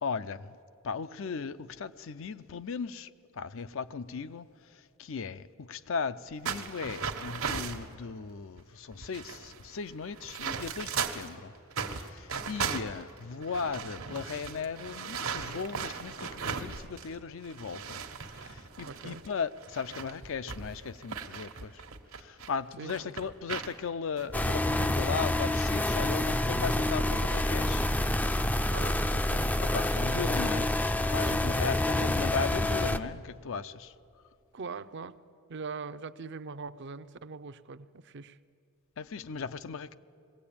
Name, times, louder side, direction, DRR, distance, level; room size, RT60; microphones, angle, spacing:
voice 1, 0.0-0.6 0.8-11.5 11.9-21.8 22.2-27.9 29.6-30.7 31.1-33.9 39.0-40.0, left 5 dB, 65° left, 0.5 m, -37 dB
sound 1, 6.4-7.9 8.6-8.7 8.9-11.3 11.7-17.1 17.4-22.5 22.9-23.7 24.2-24.3 24.9-25.1, right 6 dB, 75° right, 1.3 m, -37 dB
voice 2, 18.9-19.2 22.8-23.1 28.7-29.5 31.2-31.4 34.5-35.2 35.5-38.4, right 4 dB, 55° right, 0.6 m, -41 dB
sound 2, 24.3-33.0, left 1 dB, 5° left, 0.4 m, -28 dB
21.5 x 16.5 x 8.6 m
head